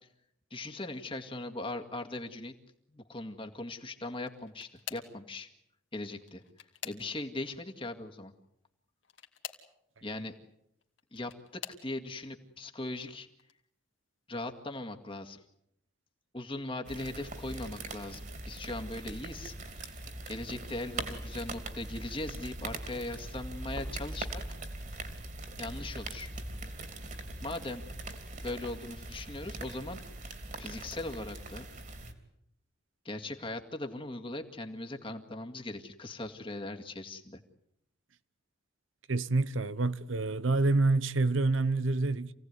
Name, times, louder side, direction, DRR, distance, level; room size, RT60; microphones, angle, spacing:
voice 1, 0.5-2.5 2.9-5.5 5.9-6.4 6.8-8.3 10.0-10.3 11.1-13.3 14.3-15.4 16.3-20.0 20.3-24.4 24.9-25.0 25.6-26.3 27.4-27.8 28.4-30.0 30.6-31.7 33.0-37.4, left 2 dB, 25° left, 2.1 m, -39 dB
sound 1, 4.2-5.2 6.2-7.4 9.0-9.7 10.8-11.9 12.6-13.0 13.4-13.5 14.9-15.0, left 9 dB, 75° left, 2.5 m, -46 dB
sound 2, 16.9-32.1, right 2 dB, 40° right, 3.1 m, -41 dB
voice 2, 39.1-42.3, right 3 dB, 80° right, 1.0 m, -27 dB
27.5 x 17.5 x 9.6 m
head